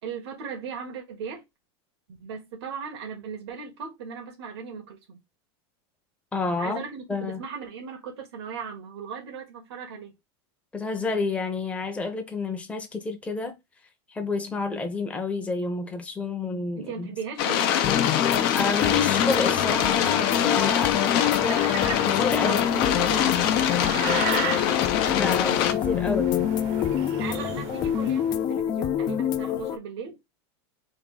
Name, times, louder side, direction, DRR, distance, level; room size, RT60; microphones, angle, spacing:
voice 1, 0.0-1.4 2.2-5.2 6.6-10.1 16.7-17.9 22.4-23.3 27.2-30.2, right 6 dB, 85° right, 1.5 m, -37 dB
voice 2, 6.3-6.8 7.1-7.4 10.7-13.6 14.1-17.1 18.5-21.7 22.1-22.6 25.1-26.3, left 3 dB, 10° left, 0.8 m, -30 dB
sound 1, 17.4-25.7, left 10 dB, 65° left, 0.7 m, -24 dB
sound 2, 17.8-29.8, left 10 dB, 30° left, 0.4 m, -27 dB
sound 3, 18.7-28.4, right 9 dB, 50° right, 0.8 m, -37 dB
3.6 x 2.3 x 3.8 m
supercardioid pair, 145°, 13 cm